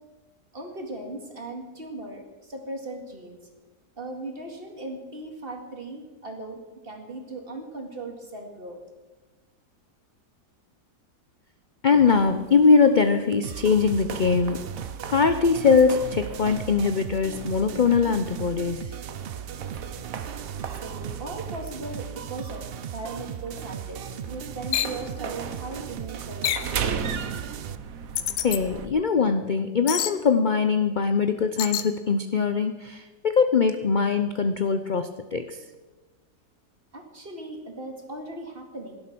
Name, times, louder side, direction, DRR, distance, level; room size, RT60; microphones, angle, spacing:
voice 1, 0.5-3.4 4.0-6.6 6.8-8.8 20.8-27.0 36.9-39.0, right 2 dB, 35° right, 3 dB, 2.3 m, -38 dB
voice 2, 11.8-14.6 15.1-18.9 28.4-35.6, left 5 dB, 55° left, 9 dB, 0.5 m, -22 dB
sound 1, 11.9-28.9, right 7 dB, 60° right, 1.4 m, -38 dB
sound 2, 13.4-27.7, right 8 dB, 80° right, 0.5 m, -37 dB
sound 3, 24.7-25.0 26.4-26.8 28.2-28.6 29.9-30.2 31.6-31.9, left 11 dB, 80° left, 1.3 m, -27 dB
17.5 x 12.0 x 6.1 m, 1.2 s
omnidirectional pair, 1.8 m